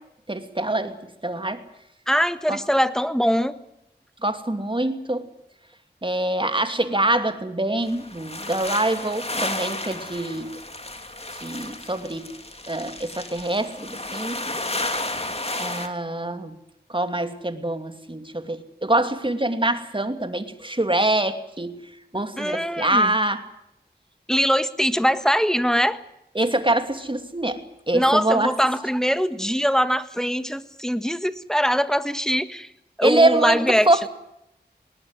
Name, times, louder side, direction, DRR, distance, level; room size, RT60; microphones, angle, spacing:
voice 1, 0.3-1.0 1.2-1.6 2.5-2.6 4.2-5.3 6.0-10.6 11.4-12.4 12.7-14.4 15.6-16.5 16.9-21.8 22.1-23.4 26.3-28.5 33.0-34.1, right 1 dB, 30° right, 8 dB, 2.7 m, -24 dB
voice 2, 2.1-3.5 22.4-23.1 24.3-26.0 27.9-32.7 33.0-33.9, equal, 5° left, 12 dB, 1.5 m, -22 dB
sound 1, 7.8-15.9, left 2 dB, 35° left, 2.9 m, -32 dB
20.5 x 19.0 x 9.7 m, 0.82 s
wide cardioid pair, 45°, 18 cm